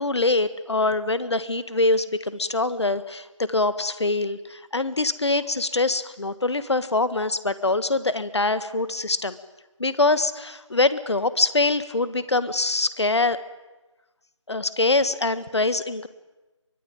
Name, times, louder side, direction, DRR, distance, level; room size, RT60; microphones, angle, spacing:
voice 1, 0.0-9.4 9.8-13.4 14.5-16.1, left 2 dB, 60° left, 14 dB, 1.7 m, -24 dB
24.0 x 20.0 x 9.2 m, 1.1 s
figure-of-eight pair, 165°, 16 cm